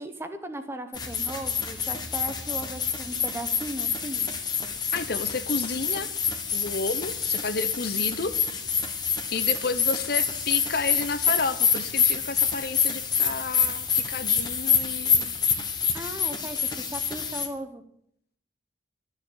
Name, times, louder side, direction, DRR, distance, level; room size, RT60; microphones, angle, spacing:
voice 1, 0.0-4.3 15.9-17.8, right 1 dB, 15° right, 8 dB, 1.0 m, -37 dB
sound 1, 0.9-17.5, left 6 dB, 20° left, 1.3 m, -27 dB
voice 2, 4.9-6.1 6.5-8.3 9.3-15.3, left 3 dB, 55° left, 12 dB, 0.8 m, -31 dB
13.0 x 6.9 x 8.6 m, 0.71 s
head